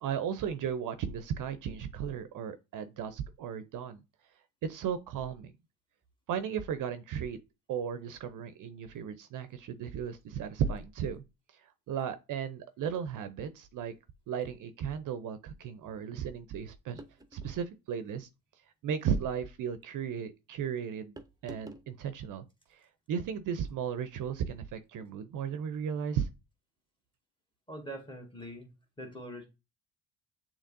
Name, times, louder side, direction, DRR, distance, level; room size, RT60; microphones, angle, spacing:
voice 1, 0.0-4.0 4.6-5.5 6.3-7.4 7.7-11.2 11.5-13.9 14.3-17.0 17.3-18.3 18.8-21.1 21.4-22.4 22.7-26.3, right 8 dB, 55° right, 0.6 m, -35 dB
sound 1, 17.0-17.6 18.9-19.2 21.2-21.9, right 1 dB, 10° right, 0.6 m, -49 dB
voice 2, 27.7-28.7 29.0-29.5, right 1 dB, 10° left, 1.5 m, -43 dB
6.5 x 3.0 x 2.5 m
supercardioid pair, 75°, 39 cm